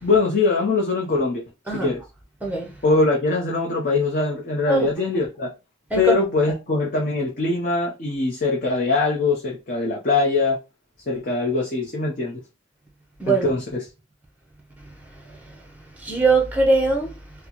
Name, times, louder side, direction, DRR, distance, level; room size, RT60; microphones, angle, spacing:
voice 1, 0.0-1.4 1.7-2.0 2.8-5.5 5.9-10.6 11.1-12.4 13.3-13.8, left 3 dB, 45° left, 0.7 m, -22 dB
voice 2, 2.4-2.7 4.7-4.9 5.9-6.1 13.2-13.5 15.1-15.6 16.0-17.2, right 3 dB, 10° right, 0.8 m, -21 dB
4.3 x 2.1 x 2.9 m
head